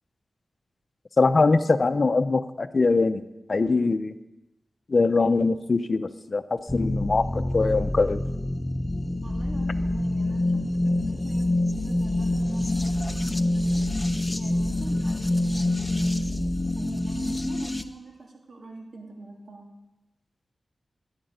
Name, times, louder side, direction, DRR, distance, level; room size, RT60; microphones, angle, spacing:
voice 1, 1.2-3.2 3.5-4.1 4.9-8.2, left 3 dB, 50° left, 10 dB, 0.7 m, -22 dB
sound 1, 6.7-17.8, left 1 dB, 15° left, 0.8 m, -26 dB
voice 2, 9.2-13.9 14.3-16.2 16.8-19.7, right 2 dB, 60° right, 1 dB, 2.8 m, -43 dB
11.0 x 9.8 x 9.2 m, 1.0 s
wide cardioid pair, 70°, 0 cm